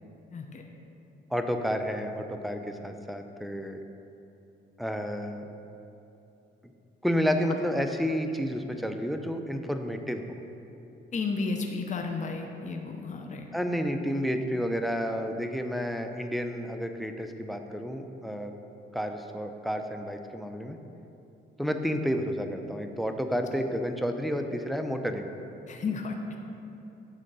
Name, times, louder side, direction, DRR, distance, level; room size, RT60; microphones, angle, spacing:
voice 1, 0.3-0.6 11.1-13.5 25.7-26.1, left 4 dB, 40° left, 3 dB, 0.7 m, -32 dB
voice 2, 1.3-3.8 4.8-5.4 7.0-10.2 13.5-18.5 18.9-20.8 21.6-25.3, equal, ahead, 5 dB, 0.6 m, -30 dB
9.0 x 3.8 x 6.8 m, 2.9 s
cardioid pair, 90°, 20 cm